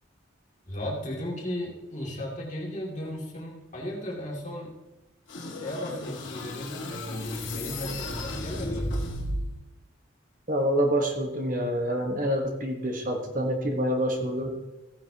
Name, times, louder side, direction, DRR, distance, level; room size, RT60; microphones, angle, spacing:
voice 1, 0.7-4.7 5.5-9.0, left 1 dB, 40° left, -3 dB, 2.4 m, -35 dB
sound 1, 5.3-9.6, left 1 dB, 70° left, 1.8 m, -34 dB
voice 2, 10.5-14.5, equal, 40° right, 3 dB, 1.2 m, -27 dB
15.0 x 9.7 x 2.8 m, 1.0 s
head